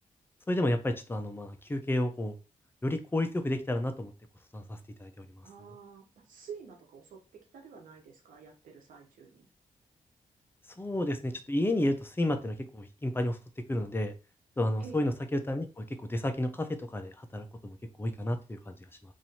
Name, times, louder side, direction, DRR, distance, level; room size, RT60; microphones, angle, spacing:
voice 1, 0.5-2.3 2.8-4.1 4.5-4.6 5.0-5.3 10.8-13.4 13.7-14.1 14.6-18.7, left 1 dB, 15° left, 7 dB, 0.7 m, -31 dB
voice 2, 5.4-9.5 14.8-15.0, right 6 dB, 90° right, 1 dB, 1.1 m, -49 dB
3.1 x 2.7 x 4.1 m, 0.31 s
cardioid pair, 65°, 14 cm